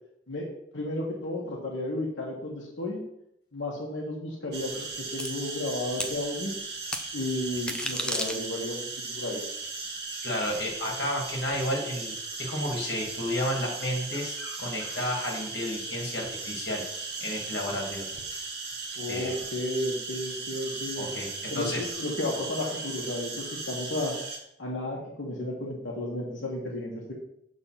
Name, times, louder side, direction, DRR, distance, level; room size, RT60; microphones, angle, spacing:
voice 1, 0.3-3.0 3.5-4.9 5.1-6.5 7.1-8.8 9.1-9.4 18.9-21.1 21.5-24.1 24.6-27.1, left 1 dB, 90° left, -4 dB, 1.5 m, -33 dB
sound 1, 4.5-24.4, right 4 dB, 55° right, 1.6 m, -37 dB
sound 2, 5.2-5.3 6.0-6.1 6.9-7.0 7.6-8.8, left 1 dB, 5° left, 0.5 m, -32 dB
voice 2, 10.2-12.1 12.4-16.8 17.2-18.1 19.1-19.4 21.0-21.9, left 1 dB, 60° left, -2 dB, 2.2 m, -32 dB
6.9 x 3.9 x 5.8 m, 0.76 s
head